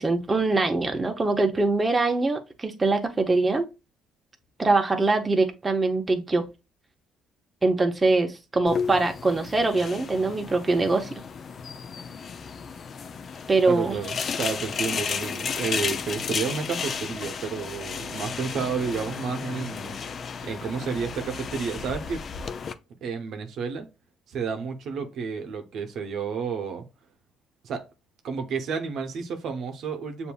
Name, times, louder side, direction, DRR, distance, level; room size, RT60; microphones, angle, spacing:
voice 1, 0.0-3.7 4.6-6.5 7.6-11.1 13.5-14.0, right 3 dB, 20° right, 0.8 m, -23 dB
sound 1, 8.7-22.7, left 6 dB, 50° left, 0.5 m, -33 dB
voice 2, 13.7-20.0 20.4-22.2 23.0-23.9 24.3-26.8 27.6-27.8 28.2-30.3, right 5 dB, 65° right, 0.8 m, -31 dB
6.8 x 2.6 x 2.3 m
supercardioid pair, 80°, 0 cm